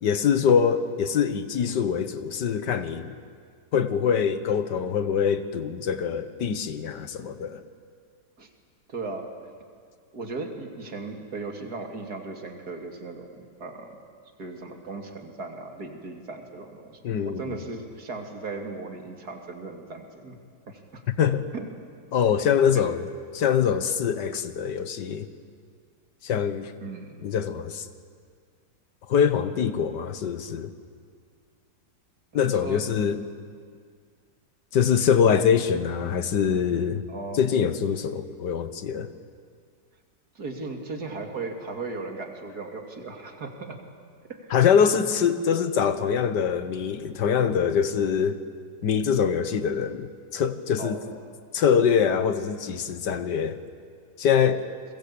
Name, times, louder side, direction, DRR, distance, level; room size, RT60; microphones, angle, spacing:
voice 1, 0.0-3.1 3.7-7.6 17.0-17.4 21.2-21.5 22.1-23.1 23.3-25.3 26.2-26.7 27.2-27.9 29.1-30.7 32.3-33.2 34.7-37.0 37.4-39.1 44.5-48.4 48.8-51.0 51.5-53.6 54.2-54.6, left 7 dB, 80° left, 11 dB, 1.8 m, -24 dB
voice 2, 8.9-9.3 10.1-14.0 14.4-20.4 20.7-21.0 21.5-21.7 22.7-22.8 26.8-27.3 32.3-32.9 37.1-37.4 40.3-43.8 44.3-44.5 50.8-51.0, right 3 dB, 60° right, 3 dB, 3.1 m, -37 dB
30.0 x 22.0 x 8.5 m, 2.1 s
omnidirectional pair, 1.8 m